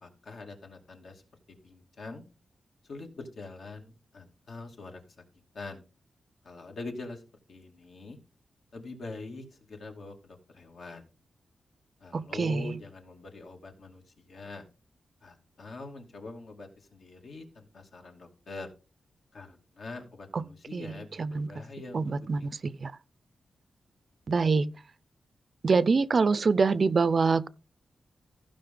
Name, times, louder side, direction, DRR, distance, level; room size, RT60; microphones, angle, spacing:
voice 1, 0.0-1.2 1.6-2.2 2.9-5.1 5.5-5.8 6.4-7.2 7.5-8.2 8.7-11.1 12.0-14.0 14.3-14.7 15.2-18.7 19.3-22.0 22.4-22.5, left 3 dB, 65° left, 2.4 m, -44 dB
voice 2, 12.1-12.8 20.3-20.4 20.7-20.9 21.2-21.5 21.9-22.9 24.3-24.7 25.6-27.5, right 4 dB, 45° right, 0.5 m, -25 dB
15.0 x 5.3 x 3.8 m
wide cardioid pair, 125°, 0 cm